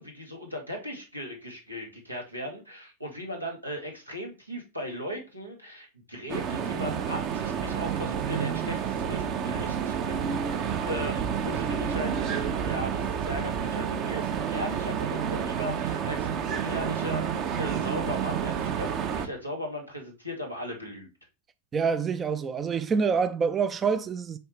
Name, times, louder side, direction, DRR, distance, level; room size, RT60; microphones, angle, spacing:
voice 1, 0.0-21.1, equal, 85° right, 2.0 m, -37 dB
sound 1, 6.3-19.3, right 7 dB, 35° right, 0.9 m, -29 dB
voice 2, 21.7-24.4, right 5 dB, 20° right, 0.4 m, -26 dB
7.7 x 4.6 x 3.3 m
figure-of-eight pair, 90°, 0 cm